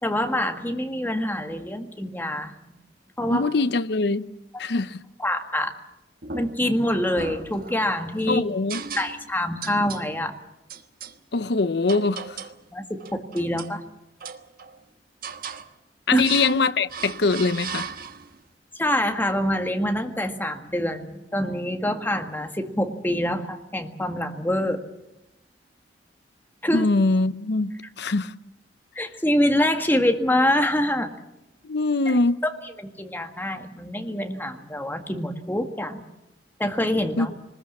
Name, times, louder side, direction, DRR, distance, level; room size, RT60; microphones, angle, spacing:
voice 1, 0.0-2.7 3.2-3.4 5.2-5.7 6.3-8.4 9.0-10.3 12.7-13.8 16.1-16.2 18.8-24.8 26.6-26.9 28.9-31.1 32.4-32.5 32.8-36.0 36.6-37.3, left 1 dB, 10° left, 1.7 m, -25 dB
voice 2, 3.3-4.3 4.6-5.0 8.3-8.8 11.3-12.2 16.1-17.9 26.7-28.3 31.6-32.4 37.2-37.3, left 3 dB, 70° left, 0.7 m, -23 dB
sound 1, 6.2-6.8 7.2-8.0 8.7-9.3 9.6-10.1 10.7-11.2 11.9-12.6 13.0-13.8 14.2-14.8 15.2-15.7 16.2-16.6 16.9-18.4, right 6 dB, 55° right, 1.2 m, -37 dB
23.0 x 20.5 x 7.4 m
head